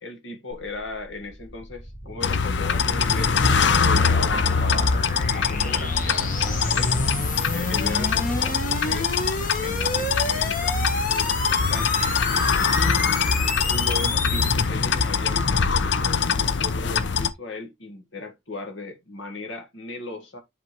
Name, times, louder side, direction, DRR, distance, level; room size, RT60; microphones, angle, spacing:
voice 1, 0.0-5.0 5.3-7.1 7.4-9.1 9.6-11.9 12.8-13.0 13.7-20.4, left 3 dB, 85° left, 1.7 m, -37 dB
sound 1, 0.5-14.7, left 2 dB, 45° left, 1.4 m, -30 dB
sound 2, 2.2-17.3, left 5 dB, 70° left, 0.6 m, -23 dB
7.8 x 4.3 x 3.1 m
head